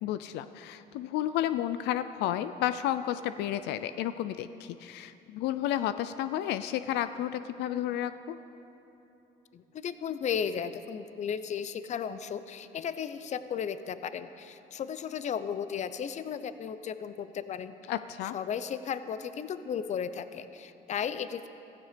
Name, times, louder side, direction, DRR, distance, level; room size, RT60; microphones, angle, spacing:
voice 1, 0.0-8.4 17.9-18.3, left 12 dB, 85° left, 12 dB, 0.5 m, -32 dB
voice 2, 9.5-17.9 18.3-21.5, left 7 dB, 45° left, 13 dB, 0.7 m, -35 dB
16.0 x 14.5 x 5.1 m, 2.9 s
cardioid pair, 110°, 17 cm